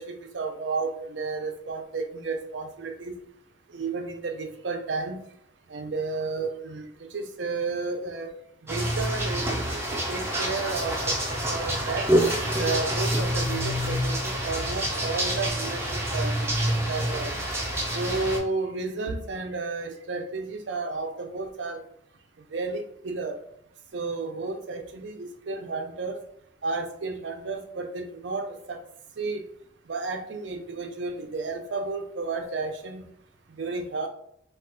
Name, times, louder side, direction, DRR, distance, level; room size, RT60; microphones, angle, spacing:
voice 1, 0.0-3.2 3.7-5.2 5.7-8.3 8.6-11.1 11.5-12.1 12.4-17.4 17.9-21.8 22.5-23.4 23.9-26.2 26.6-28.8 29.2-29.4 29.9-33.1 33.6-34.1, right 3 dB, 70° right, 6 dB, 0.5 m, -32 dB
sound 1, 8.7-18.4, right 1 dB, 15° right, 0.5 m, -27 dB
2.4 x 2.3 x 3.7 m, 0.70 s
head